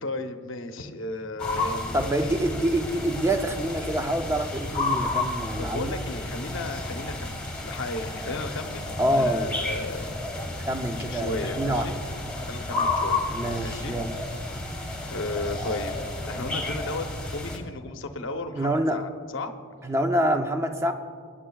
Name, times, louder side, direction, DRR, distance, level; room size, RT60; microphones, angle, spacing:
voice 1, 0.0-2.4 5.6-10.1 11.0-11.9 12.4-13.2 13.6-14.0 15.1-16.0 16.2-19.5, left 2 dB, 55° left, 6 dB, 0.8 m, -34 dB
sound 1, 1.4-17.6, left 2 dB, 5° left, 1.4 m, -31 dB
voice 2, 1.9-6.0 9.0-9.6 10.7-11.9 13.3-14.2 18.5-19.0 19.8-20.9, right 1 dB, 10° right, 6 dB, 0.5 m, -26 dB
23.0 x 10.0 x 2.3 m, 2.1 s
head